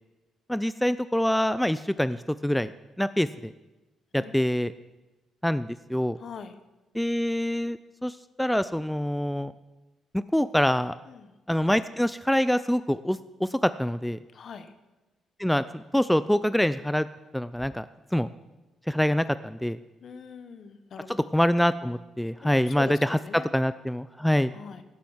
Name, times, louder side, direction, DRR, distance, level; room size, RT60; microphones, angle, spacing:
voice 1, 0.5-2.7 3.0-3.5 4.1-4.7 5.4-6.2 6.9-9.5 10.1-11.0 11.5-14.2 15.4-17.1 17.3-17.9 18.1-18.3 18.9-19.8 21.1-24.5, equal, 5° left, 14 dB, 0.4 m, -25 dB
voice 2, 6.2-6.5 11.1-11.3 14.3-14.7 20.0-21.2 22.4-22.9 23.2-23.5 24.5-24.8, left 6 dB, 55° left, 10 dB, 1.2 m, -42 dB
16.0 x 7.5 x 7.3 m, 1.1 s
cardioid pair, 90°, 0 cm